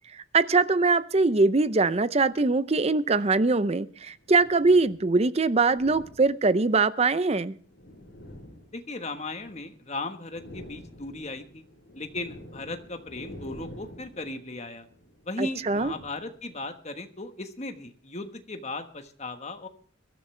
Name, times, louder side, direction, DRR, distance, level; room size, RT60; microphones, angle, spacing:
voice 1, 0.1-7.5 15.4-15.9, right 3 dB, 30° right, 0.5 m, -22 dB
sound 1, 2.3-2.5 3.5-5.0 5.6-6.7 7.4-9.8 10.1-16.7, equal, 60° left, 3.7 m, -48 dB
voice 2, 8.7-11.6 11.9-14.9 15.2-19.7, left 2 dB, 35° left, 1.3 m, -37 dB
22.5 x 12.5 x 3.3 m
head